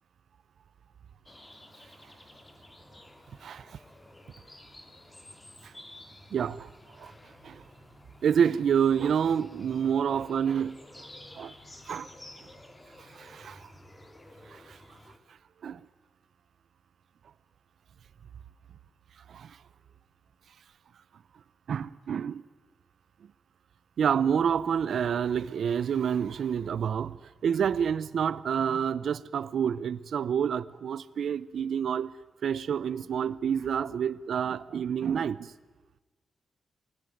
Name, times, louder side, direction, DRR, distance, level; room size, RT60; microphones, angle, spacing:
sound 1, 1.3-15.2, left 1 dB, 15° left, 2.4 m, -52 dB
voice 1, 6.3-6.7 7.0-7.1 7.4-7.6 8.2-10.8 11.4-11.5 11.9-12.1 13.2-13.6 15.6-15.8 19.3-19.5 21.7-22.4 24.0-27.2 27.4-32.1 32.4-35.5, right 8 dB, 70° right, 0.8 m, -28 dB
29.0 x 21.0 x 9.3 m
wide cardioid pair, 145°, 0 cm